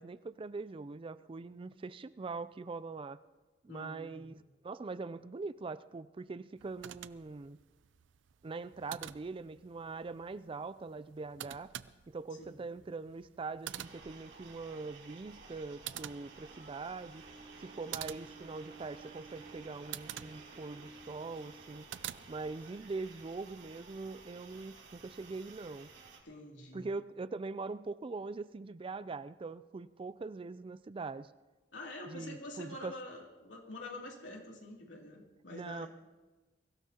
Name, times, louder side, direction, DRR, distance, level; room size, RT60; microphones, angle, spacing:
voice 1, 0.0-3.2 3.6-7.6 8.4-11.7 12.1-17.2 17.6-21.9 22.3-25.9 26.7-31.3 32.0-33.0 35.5-35.9, right 3 dB, 30° right, 15 dB, 0.4 m, -42 dB
voice 2, 3.7-4.3 12.3-12.6 26.2-26.9 31.7-35.9, left 2 dB, 85° left, 0 dB, 2.8 m, -47 dB
sound 1, 6.6-22.8, right 11 dB, 85° right, 0.5 m, -49 dB
sound 2, 13.7-26.2, right 4 dB, 70° right, 3.2 m, -55 dB
sound 3, 15.1-23.2, right 3 dB, 50° right, 3.5 m, -56 dB
23.0 x 16.0 x 2.9 m, 1.2 s
head